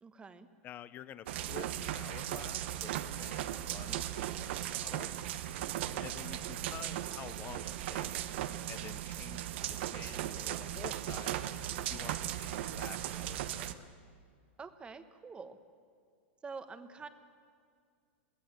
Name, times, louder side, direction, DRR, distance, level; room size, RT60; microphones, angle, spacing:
voice 1, 0.0-0.5 5.5-5.8 14.6-15.6 16.4-17.1, right 4 dB, 15° right, 11 dB, 1.1 m, -47 dB
voice 2, 0.6-5.1 6.0-8.3 8.7-11.5 11.9-13.9, left 10 dB, 30° left, 16 dB, 0.7 m, -50 dB
sound 1, 1.3-13.7, right 12 dB, 65° right, 1.0 m, -37 dB
23.0 x 16.0 x 7.7 m, 2.2 s
hypercardioid pair, 130°, 7 cm